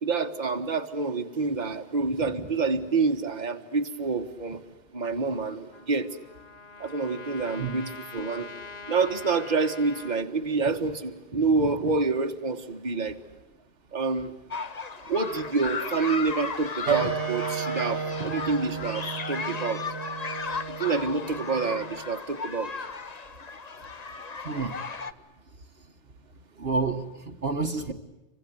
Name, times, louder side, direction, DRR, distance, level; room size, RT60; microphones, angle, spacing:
voice 1, 0.0-4.6 4.9-6.1 6.8-8.5 8.9-13.2 13.9-14.3 15.1-19.8 20.7-22.7 27.9-28.0, right 4 dB, 40° right, 4 dB, 1.6 m, -27 dB
Trumpet, 5.7-10.2, left 4 dB, 60° left, 1.7 m, -43 dB
sound 1, 14.5-25.1, left 4 dB, 35° left, 1.1 m, -35 dB
Wind instrument woodwind instrument, 16.9-22.0, right 7 dB, 80° right, 1.4 m, -32 dB
voice 2, 24.4-24.8 26.6-27.9, right 4 dB, 60° right, 5 dB, 1.6 m, -29 dB
28.5 x 25.0 x 8.2 m, 1.0 s
omnidirectional pair, 1.2 m